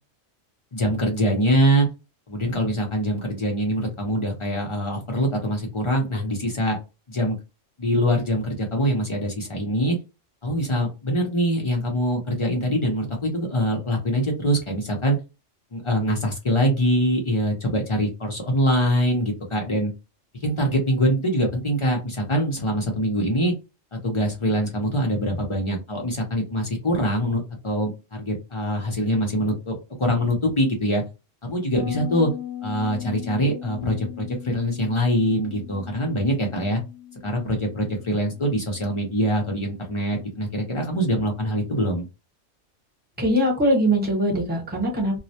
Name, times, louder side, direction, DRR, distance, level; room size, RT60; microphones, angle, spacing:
voice 1, 0.7-1.9 2.3-6.8 7.1-7.4 7.8-10.0 10.4-15.2 15.7-19.9 20.4-23.5 23.9-31.0 31.4-32.3 32.6-36.8 37.2-42.0, equal, 50° left, 1 dB, 0.3 m, -24 dB
Bass guitar, 31.7-41.1, left 11 dB, 25° left, 0.7 m, -39 dB
voice 2, 43.2-45.2, equal, 10° right, -2 dB, 0.8 m, -21 dB
2.3 x 2.0 x 2.7 m, 0.28 s
omnidirectional pair, 1.3 m